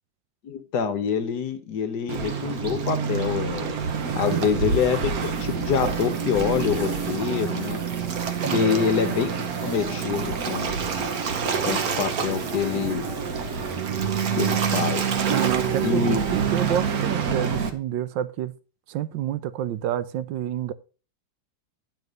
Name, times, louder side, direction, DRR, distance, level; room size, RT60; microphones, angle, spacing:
voice 1, 0.4-3.7 4.2-7.8 8.5-9.4 9.6-10.7 11.7-13.1 14.4-15.0 15.8-16.2, left 7 dB, 65° left, 1.3 m, -26 dB
Waves surf, 2.1-17.7, right 6 dB, 55° right, 1.3 m, -27 dB
sound 1, 3.4-17.0, right 1 dB, 30° right, 1.7 m, -43 dB
voice 2, 4.2-4.5 8.4-8.9 15.3-18.5 18.9-20.7, right 11 dB, 75° right, 1.3 m, -28 dB
9.5 x 4.9 x 5.2 m
omnidirectional pair, 2.1 m